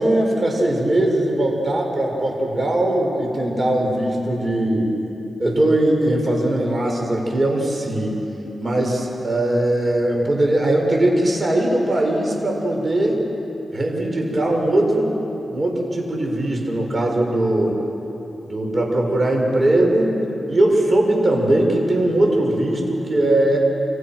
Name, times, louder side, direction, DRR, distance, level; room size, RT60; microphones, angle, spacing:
voice 1, 0.0-5.0 5.4-8.2 8.6-13.2 13.7-15.1 15.5-17.8 18.5-20.1 20.5-23.6, right 1 dB, 40° right, 0 dB, 7.0 m, -20 dB
29.0 x 27.5 x 6.4 m, 3.0 s
cardioid pair, 65°, 0 cm